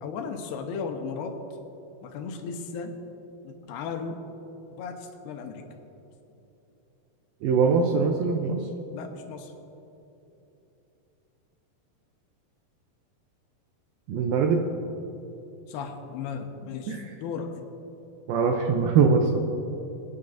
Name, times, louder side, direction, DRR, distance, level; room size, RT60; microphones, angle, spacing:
voice 1, 0.0-1.4 2.0-3.0 3.4-4.2 4.7-5.6 8.9-9.5 15.7-17.5, left 5 dB, 80° left, 4 dB, 2.8 m, -35 dB
voice 2, 7.4-8.7 14.1-14.6 16.9-17.1 18.3-19.4, right 5 dB, 80° right, 3 dB, 2.2 m, -22 dB
25.0 x 9.6 x 2.6 m, 2.9 s
omnidirectional pair, 4.8 m